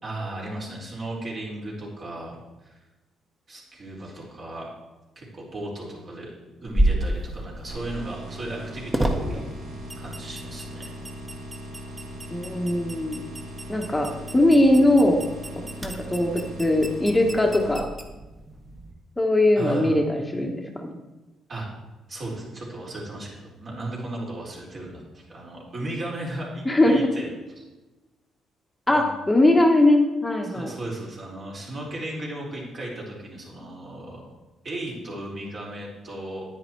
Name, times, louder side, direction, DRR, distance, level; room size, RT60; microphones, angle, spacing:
voice 1, 0.0-2.8 3.5-4.7 5.2-6.3 6.6-9.4 10.0-10.9 19.5-20.0 21.5-21.7 22.1-27.7 28.9-29.1 30.4-34.2 34.6-36.5, right 1 dB, 45° right, -3 dB, 4.4 m, -35 dB
sound 1, 6.7-18.9, right 1 dB, 15° right, 1.6 m, -32 dB
sound 2, 7.7-17.7, equal, 75° right, 2.6 m, -39 dB
voice 2, 12.3-13.2 13.7-14.1 14.3-15.2 15.5-17.9 19.2-20.9 26.6-27.0 28.9-30.7, left 1 dB, 10° left, 1 dB, 1.3 m, -20 dB
9.9 x 9.6 x 4.6 m, 1.1 s
cardioid pair, 90°, 0 cm